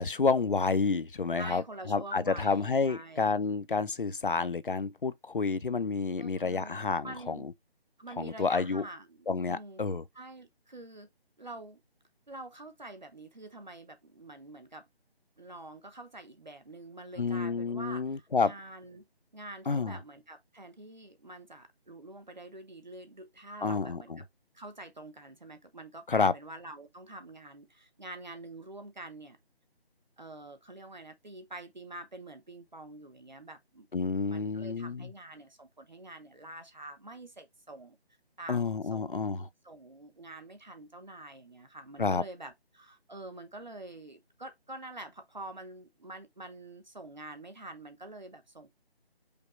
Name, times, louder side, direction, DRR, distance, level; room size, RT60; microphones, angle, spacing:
voice 1, 0.0-1.6 1.9-7.5 8.2-8.8 9.3-10.0 17.2-18.5 19.7-20.0 23.6-24.2 26.1-26.3 33.9-35.1 38.5-39.5 42.0-42.2, left 4 dB, 55° left, 0.5 m, -29 dB
voice 2, 1.3-3.3 6.2-6.8 7.0-7.5 8.0-9.8 10.1-11.1 11.4-11.8 12.3-14.8 15.4-19.0 19.3-24.1 24.5-29.4 30.2-33.9 34.2-38.0 38.4-39.3 39.6-48.8, right 2 dB, 45° right, 0.8 m, -46 dB
5.2 x 2.2 x 4.2 m
figure-of-eight pair, 180°, 31 cm